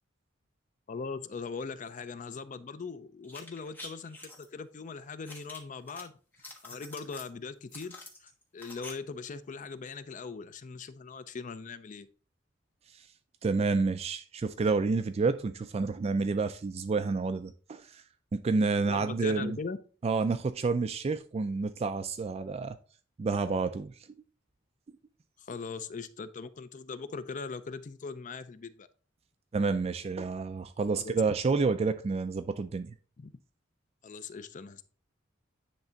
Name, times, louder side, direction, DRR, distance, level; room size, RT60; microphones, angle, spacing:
voice 1, 0.9-6.1 6.6-12.1 18.8-19.8 25.4-28.9 31.0-31.2 33.2-33.3 34.0-34.8, left 4 dB, 40° left, 0.5 m, -40 dB
sound 1, 3.2-4.5 5.3-6.0 6.3-7.3 7.7-8.9 9.2-9.3, left 2 dB, 10° left, 1.2 m, -46 dB
voice 2, 13.4-18.0 18.3-19.6 20.0-22.8 23.2-23.9 29.5-32.9, right 4 dB, 30° right, 0.3 m, -29 dB
9.7 x 3.3 x 3.9 m
head